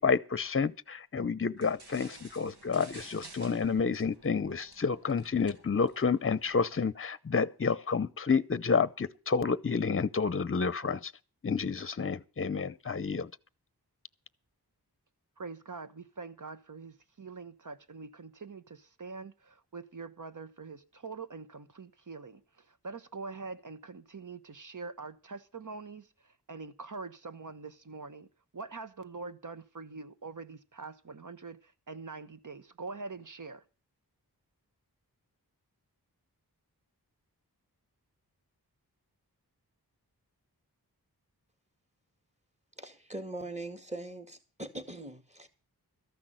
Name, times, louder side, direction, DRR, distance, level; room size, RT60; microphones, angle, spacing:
voice 1, 0.0-11.1 11.4-13.3, left 5 dB, 35° left, 0.7 m, -29 dB
sound 1, 1.6-6.9, right 3 dB, 85° right, 1.8 m, -54 dB
voice 2, 15.4-33.6, right 4 dB, 50° right, 1.1 m, -44 dB
voice 3, 42.8-45.5, right 2 dB, 15° right, 2.1 m, -41 dB
14.0 x 6.0 x 9.0 m
wide cardioid pair, 50°, 39 cm